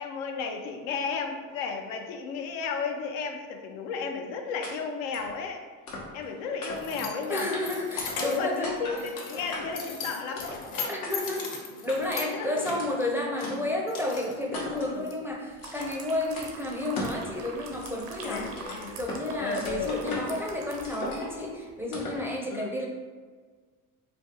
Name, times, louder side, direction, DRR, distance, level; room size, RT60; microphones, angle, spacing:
voice 1, 0.0-5.6 6.1-7.5 8.2-10.6 12.2-12.6 14.9-15.1 18.2-18.9 19.4-19.9 22.5-22.7, left 5 dB, 75° left, 4 dB, 0.6 m, -33 dB
sound 1, 4.6-4.7 5.1-5.3 5.9-6.3 6.6-7.1 7.5-7.6 8.0-8.4 8.6-9.0 9.5-9.9 10.4-10.6 11.0-11.1 11.9-12.3 12.8-12.9 13.4-13.5 14.0-14.1 14.5-14.9 15.6-16.0 16.4-16.5 17.0-17.2 17.5-19.2 19.5-20.4 20.8-21.4 21.9-22.2, left 2 dB, 90° left, 0.9 m, -38 dB
Keys jangling, 6.0-15.1, left 4 dB, 50° left, 0.9 m, -39 dB
voice 2, 7.3-8.8 10.9-11.5 11.8-22.9, left 1 dB, 5° right, -1 dB, 0.5 m, -31 dB
sound 2, 15.3-21.3 21.7-21.8, right 4 dB, 70° right, 0.7 m, -45 dB
3.3 x 2.3 x 2.8 m, 1.5 s
hypercardioid pair, 70°, 42 cm